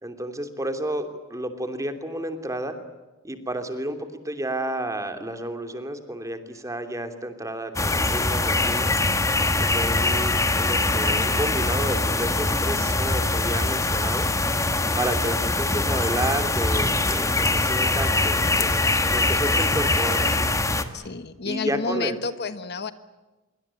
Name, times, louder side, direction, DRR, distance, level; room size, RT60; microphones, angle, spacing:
voice 1, 0.0-2.8 3.2-4.0 4.2-9.0 9.6-14.3 15.0-20.5 21.4-22.2, right 1 dB, 15° right, 7 dB, 2.9 m, -31 dB
sound 1, 7.8-20.8, left 2 dB, 15° left, 1.7 m, -23 dB
voice 2, 20.9-22.9, left 4 dB, 55° left, 12 dB, 1.3 m, -30 dB
25.5 x 24.0 x 8.9 m, 1.1 s
head